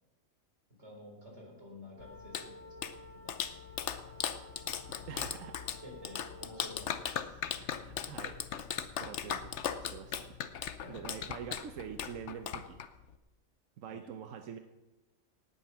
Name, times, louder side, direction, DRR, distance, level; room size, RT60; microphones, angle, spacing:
voice 1, 0.8-3.6 4.9-5.1 5.8-7.4 10.8-11.0 13.9-14.1, left 1 dB, 60° right, 0 dB, 4.2 m, -52 dB
sound 1, 1.9-6.9, left 2 dB, 10° right, 2.1 m, -53 dB
Clapping, 2.0-13.2, left 8 dB, 65° left, 1.0 m, -38 dB
voice 2, 5.1-5.7 7.6-8.4 8.8-10.3 10.9-12.8 13.8-14.6, right 8 dB, 85° right, 6 dB, 1.2 m, -45 dB
18.5 x 8.5 x 5.9 m, 1.1 s
omnidirectional pair, 1.3 m